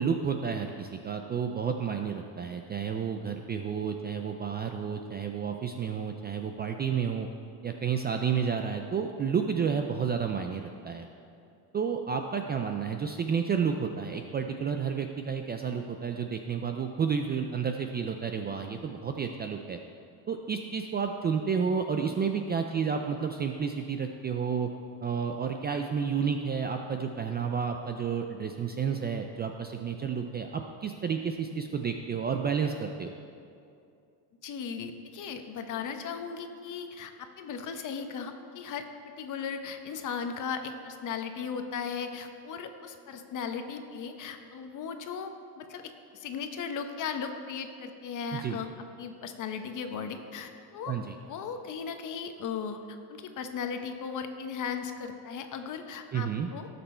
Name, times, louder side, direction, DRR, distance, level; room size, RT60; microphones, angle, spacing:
voice 1, 0.0-7.3 7.6-11.1 11.7-19.8 20.3-24.7 25.0-33.1 48.3-48.6 50.9-51.2 56.1-56.5, right 6 dB, 25° right, 5 dB, 0.3 m, -31 dB
voice 2, 34.4-38.9 39.2-45.8 46.1-48.7 49.0-51.0 51.3-56.7, left 6 dB, 45° left, 7 dB, 1.0 m, -37 dB
18.0 x 6.8 x 4.3 m, 2.5 s
cardioid pair, 145°, 44 cm